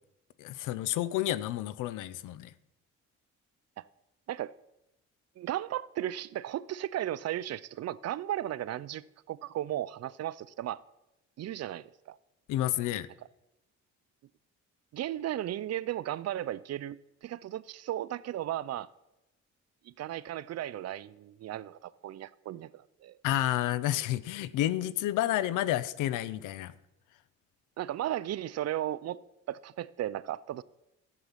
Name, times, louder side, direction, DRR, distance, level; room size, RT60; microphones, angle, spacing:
voice 1, 0.4-2.5 12.5-13.1 23.2-26.7, left 13 dB, 90° left, 0.6 m, -30 dB
voice 2, 5.4-10.8 11.4-12.2 14.9-18.9 19.8-23.2 27.8-29.2 29.5-30.6, right 12 dB, 60° right, 0.5 m, -35 dB
13.5 x 7.5 x 5.7 m
cardioid pair, 90°, 30 cm